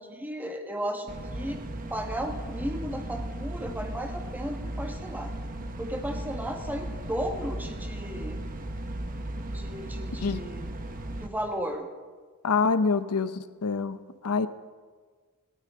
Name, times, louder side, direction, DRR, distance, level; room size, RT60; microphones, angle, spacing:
voice 1, 0.0-1.6 1.9-5.3 5.8-8.4 9.5-10.7 11.2-11.9 12.8-12.9, equal, 10° right, 3 dB, 1.4 m, -35 dB
sound 1, 1.1-11.3, right 1 dB, 40° right, 1.1 m, -36 dB
voice 2, 12.4-14.0 14.2-14.5, left 4 dB, 85° left, 13 dB, 0.7 m, -26 dB
18.0 x 16.0 x 3.7 m, 1.5 s
head